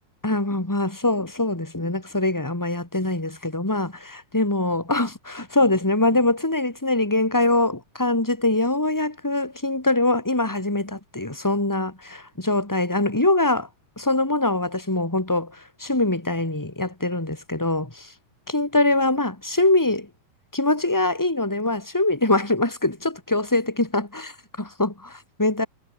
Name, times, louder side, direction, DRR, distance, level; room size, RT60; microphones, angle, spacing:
voice 1, 0.2-13.7 14.0-18.1 18.5-20.1 20.5-25.7, left 2 dB, 5° left, 3.3 m, -23 dB
omnidirectional pair, 4.0 m